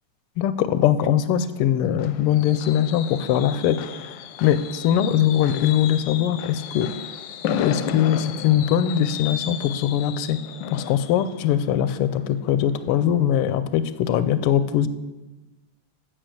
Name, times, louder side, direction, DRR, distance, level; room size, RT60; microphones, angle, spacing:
voice 1, 0.4-3.8 4.4-6.9 7.6-10.4 10.7-14.9, left 10 dB, 90° left, 13 dB, 1.5 m, -21 dB
Fireworks, 1.3-13.0 13.4-13.7 14.0-14.1, left 8 dB, 75° left, 1.1 m, -34 dB
8.3 x 6.2 x 7.7 m, 1.1 s
omnidirectional pair, 2.4 m